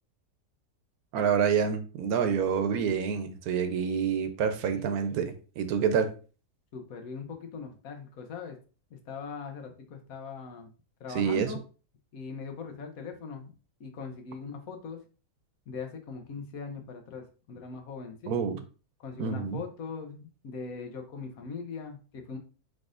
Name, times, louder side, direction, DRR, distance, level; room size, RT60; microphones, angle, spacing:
voice 1, 1.1-6.1 11.1-11.5 18.3-18.6 19.2-19.6, right 7 dB, 75° right, 1.1 m, -27 dB
voice 2, 6.7-8.6 8.9-10.7 11.0-11.6 12.1-13.5 13.8-15.0 15.7-18.3 19.0-22.4, left 5 dB, 70° left, 1.2 m, -40 dB
4.8 x 4.1 x 2.5 m
omnidirectional pair, 1.6 m